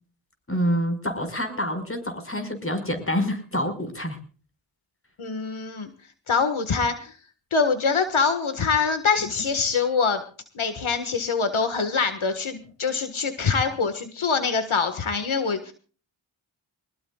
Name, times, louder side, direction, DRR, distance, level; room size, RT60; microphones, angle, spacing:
voice 1, 0.5-4.2, equal, 25° left, 7 dB, 5.2 m, -27 dB
voice 2, 5.2-5.9 6.3-7.1 7.5-10.2 10.5-15.7, left 5 dB, 75° left, 8 dB, 1.7 m, -24 dB
23.0 x 20.5 x 2.4 m, 0.39 s
wide cardioid pair, 65°, 48 cm